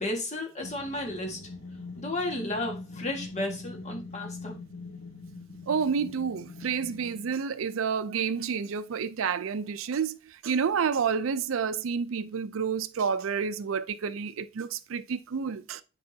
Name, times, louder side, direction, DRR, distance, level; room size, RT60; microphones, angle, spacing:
voice 1, 0.0-1.4 2.0-4.6, left 1 dB, 35° left, 1.6 m, -33 dB
sound 1, 0.6-7.4, left 3 dB, 75° left, 2.2 m, -43 dB
voice 2, 5.7-15.8, right 6 dB, 90° right, 0.4 m, -29 dB
8.7 x 4.8 x 2.7 m
head